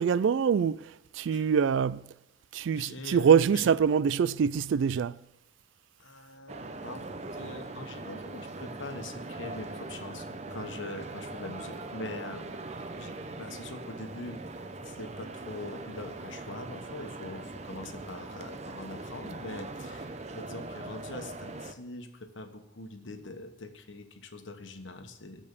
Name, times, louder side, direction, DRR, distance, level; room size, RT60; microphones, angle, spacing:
voice 1, 0.0-2.1 2.5-5.2, right 7 dB, 65° right, 0.3 m, -25 dB
voice 2, 2.7-3.7 6.0-12.7 13.0-14.4 14.8-25.4, left 2 dB, 65° left, 1.3 m, -43 dB
sound 1, 6.5-21.7, right 2 dB, 35° right, 0.6 m, -41 dB
13.5 x 5.3 x 8.3 m
head